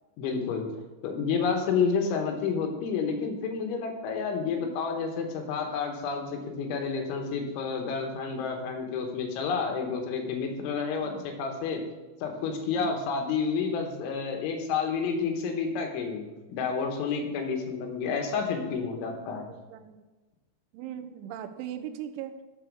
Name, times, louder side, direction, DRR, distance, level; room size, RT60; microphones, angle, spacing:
voice 1, 0.2-0.7 1.0-11.8 12.2-19.5, left 5 dB, 85° left, 3 dB, 3.7 m, -30 dB
voice 2, 11.0-11.8 12.7-13.0 18.9-20.0 20.7-22.3, right 10 dB, 85° right, 8 dB, 3.0 m, -41 dB
12.5 x 4.2 x 6.2 m, 1.2 s
omnidirectional pair, 5.4 m